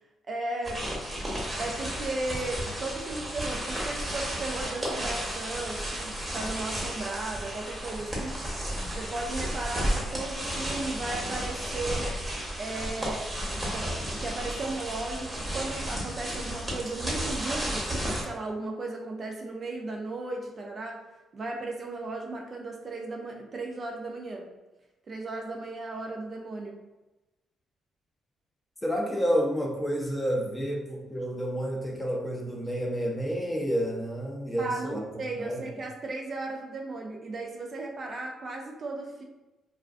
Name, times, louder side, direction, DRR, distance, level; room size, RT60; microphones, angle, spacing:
voice 1, 0.3-0.9 1.6-8.4 9.0-12.1 12.6-13.3 13.6-21.0 21.3-24.5 25.1-26.8 34.6-39.2, right 2 dB, 40° right, 1 dB, 0.4 m, -36 dB
sound 1, 0.6-18.2, right 1 dB, 15° right, 0.9 m, -33 dB
voice 2, 28.8-35.0 35.4-35.6, equal, 10° left, 0 dB, 0.5 m, -29 dB
2.4 x 2.4 x 2.4 m, 1.0 s
cardioid pair, 90°, 0 cm